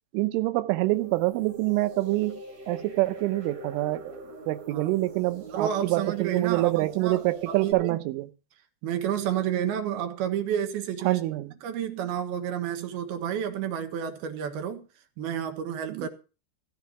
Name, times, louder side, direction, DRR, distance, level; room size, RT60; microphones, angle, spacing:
voice 1, 0.1-2.4 2.7-8.3 11.0-11.5 15.9-16.1, right 19 dB, 90° right, 3.3 m, -26 dB
sound 1, 0.9-7.7, right 1 dB, 40° right, 3.6 m, -44 dB
voice 2, 5.5-8.0 8.8-11.2 11.6-14.8 15.2-16.1, right 9 dB, 65° right, 2.9 m, -30 dB
15.0 x 5.8 x 7.0 m
omnidirectional pair, 5.5 m